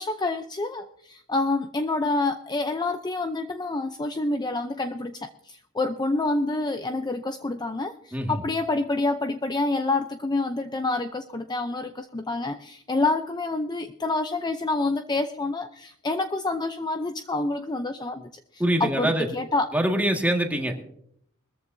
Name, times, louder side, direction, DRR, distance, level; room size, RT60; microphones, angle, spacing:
voice 1, 0.0-19.7, left 2 dB, 20° left, 7 dB, 0.6 m, -28 dB
voice 2, 8.1-8.4 18.6-19.3 19.7-20.8, right 1 dB, 5° right, 2 dB, 1.8 m, -24 dB
21.5 x 14.0 x 2.7 m, 0.68 s
head